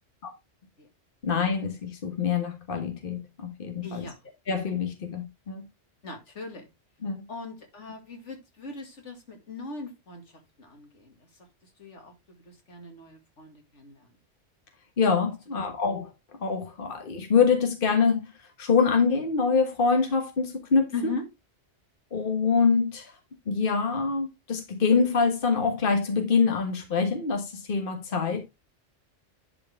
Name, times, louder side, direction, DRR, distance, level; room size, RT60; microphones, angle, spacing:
voice 1, 1.2-4.0 4.5-5.6 7.0-7.3 15.0-16.1 16.4-18.3 18.6-20.9 22.1-23.1 23.5-28.4, left 5 dB, 50° left, 1.6 m, -25 dB
voice 2, 3.8-4.3 6.0-6.7 7.3-14.1 15.5-15.6 20.9-21.2, left 3 dB, 80° left, 2.4 m, -40 dB
11.0 x 5.0 x 3.4 m
omnidirectional pair, 1.2 m